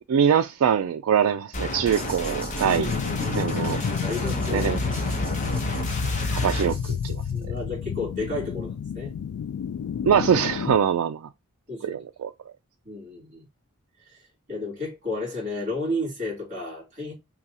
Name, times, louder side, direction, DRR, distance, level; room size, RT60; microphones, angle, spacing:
voice 1, 0.1-2.9 3.3-3.8 4.5-4.8 6.3-7.2 10.1-11.2 11.8-12.3, right 8 dB, 85° right, 0.3 m, -23 dB
sound 1, 1.5-6.7, equal, 35° left, 0.8 m, -30 dB
sound 2, 1.9-7.6, right 2 dB, 10° right, 1.8 m, -44 dB
sound 3, 2.6-10.8, left 7 dB, 75° left, 0.3 m, -30 dB
voice 2, 2.8-3.5 4.0-4.9 5.5-5.6 7.3-9.1 11.7-12.0 12.8-13.4 14.0-14.2 14.5-17.1, left 2 dB, 35° right, 2.5 m, -32 dB
5.5 x 2.3 x 2.7 m
head